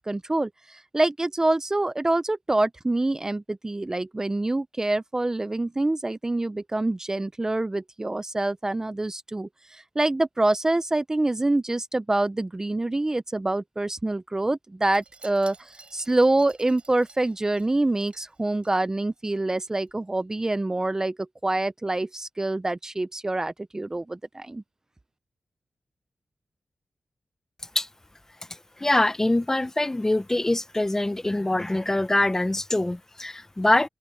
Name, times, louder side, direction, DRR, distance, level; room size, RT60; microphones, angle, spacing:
voice 1, 0.0-24.6, right 2 dB, 20° right, 0.6 m, -26 dB
Wind chime, 14.9-19.3 19.6-19.9 20.2-20.3, right 3 dB, 40° right, 6.2 m, -53 dB
voice 2, 28.8-33.9, left 1 dB, 15° left, 0.7 m, -24 dB
wide cardioid pair, 85°, 3 cm